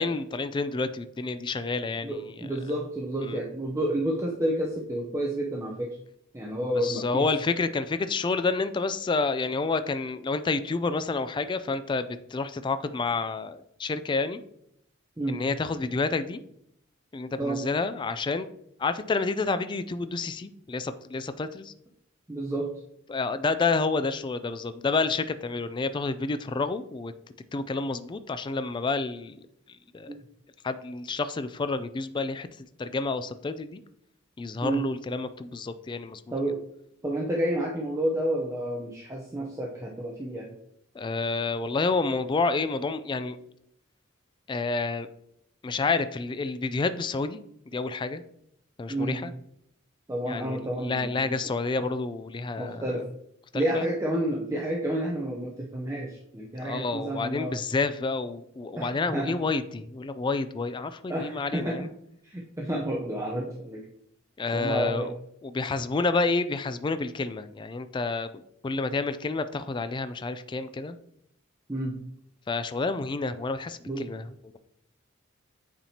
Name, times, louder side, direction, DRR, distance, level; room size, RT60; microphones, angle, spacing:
voice 1, 0.0-2.5 3.2-3.4 6.8-14.4 15.3-16.4 17.1-18.5 18.8-21.7 23.1-27.1 27.5-29.4 29.9-30.1 30.6-33.8 34.4-36.2 41.0-43.4 44.5-45.1 45.6-47.4 47.7-48.2 48.8-49.3 50.3-52.9 53.5-53.9 56.6-61.9 64.4-65.1 65.4-71.0 72.5-74.3, left 3 dB, 25° left, 12 dB, 0.3 m, -29 dB
voice 2, 2.0-6.0 6.3-7.3 15.2-15.4 17.4-17.6 22.3-22.7 30.1-30.2 34.6-34.8 36.3-36.6 37.0-40.5 48.9-49.2 50.1-51.3 52.6-53.0 53.5-57.5 58.8-59.4 61.1-61.9 62.2-63.8 64.5-65.1 71.7-71.9 73.9-74.1, right 1 dB, 15° right, -2 dB, 0.6 m, -30 dB
8.7 x 4.3 x 2.8 m, 0.74 s
head